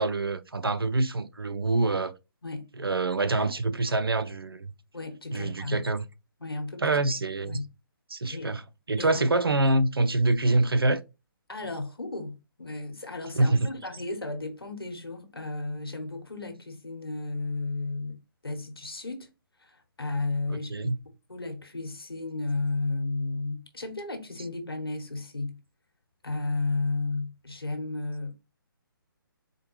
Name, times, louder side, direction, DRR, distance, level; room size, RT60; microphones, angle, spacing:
voice 1, 0.0-2.1 2.8-4.7 5.3-6.0 6.8-7.6 8.1-8.6 8.9-11.0 13.4-13.7 20.5-21.0, right 2 dB, 90° right, 0.4 m, -25 dB
voice 2, 4.9-5.8 6.4-7.0 7.4-7.7 8.3-8.6 9.0-9.2 11.5-19.3 19.6-20.9 21.3-25.6 26.2-28.3, left 3 dB, 85° left, 1.2 m, -33 dB
4.4 x 2.2 x 3.1 m
figure-of-eight pair, 140°, 12 cm